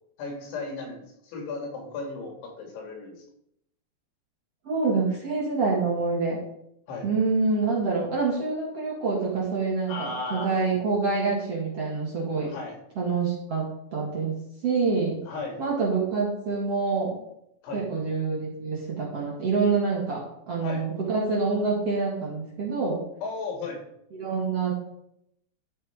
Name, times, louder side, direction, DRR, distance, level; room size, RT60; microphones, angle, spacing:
voice 1, 0.2-3.2 6.9-7.1 9.9-10.5 12.4-12.7 15.3-15.6 17.6-17.8 20.6-20.8 23.2-23.8, left 3 dB, 85° left, 2 dB, 4.6 m, -35 dB
voice 2, 4.6-6.4 7.0-12.5 13.0-13.6 13.9-14.3 14.6-15.2 15.6-17.2 17.7-23.0 24.1-24.7, right 4 dB, 40° right, -4 dB, 2.5 m, -26 dB
12.5 x 5.6 x 5.1 m, 0.76 s
omnidirectional pair, 5.2 m